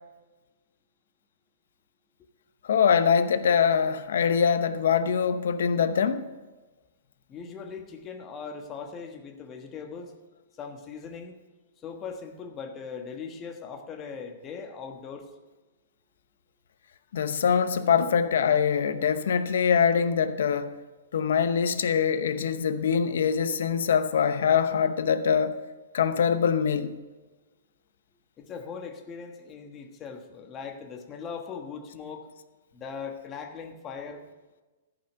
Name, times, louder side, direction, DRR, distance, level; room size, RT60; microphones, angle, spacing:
voice 1, 2.6-6.3 17.1-20.7 21.1-25.6 25.9-26.9, left 7 dB, 75° left, 0.8 m, -23 dB
voice 2, 7.3-10.2 10.6-11.4 11.8-15.3 28.4-32.3 32.7-34.2, left 6 dB, 25° left, 1.3 m, -40 dB
14.0 x 5.9 x 6.7 m
hypercardioid pair, 135°, 0 cm